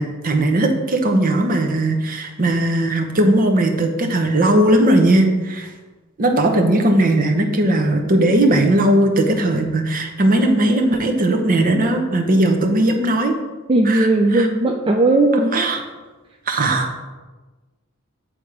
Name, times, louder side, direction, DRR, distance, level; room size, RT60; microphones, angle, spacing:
voice 1, 0.0-5.7 6.2-13.3 13.8-14.5 15.5-15.8 16.5-16.9, right 1 dB, 40° right, 4 dB, 0.8 m, -18 dB
voice 2, 13.7-15.5, right 2 dB, 25° right, 1 dB, 0.4 m, -16 dB
8.6 x 3.5 x 4.8 m, 1.3 s
head